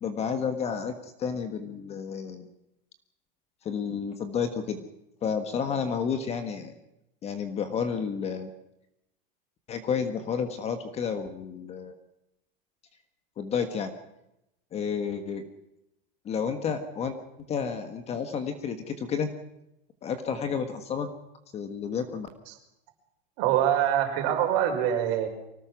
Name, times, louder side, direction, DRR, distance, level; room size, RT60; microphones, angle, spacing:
voice 1, 0.0-2.5 3.6-4.8 5.2-6.7 7.2-8.5 9.7-12.0 13.4-13.9 14.7-15.4 16.2-17.2 17.5-19.3 20.0-21.1 21.5-22.3, left 6 dB, 20° left, 8 dB, 1.5 m, -31 dB
voice 2, 23.4-25.3, right 10 dB, 45° right, 3 dB, 5.6 m, -24 dB
24.5 x 18.5 x 6.1 m, 0.86 s
supercardioid pair, 160°, 29 cm